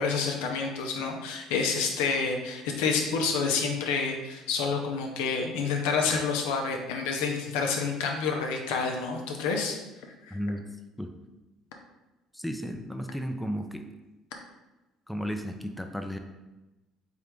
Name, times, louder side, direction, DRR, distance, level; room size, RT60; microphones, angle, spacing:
voice 1, 0.0-9.8 10.3-10.4, left 5 dB, 80° left, 2 dB, 0.6 m, -28 dB
voice 2, 10.3-10.6 11.0-11.1 12.3-13.8 15.1-16.2, equal, ahead, 5 dB, 0.5 m, -33 dB
3.8 x 3.2 x 3.5 m, 1.1 s
hypercardioid pair, 70°, 0 cm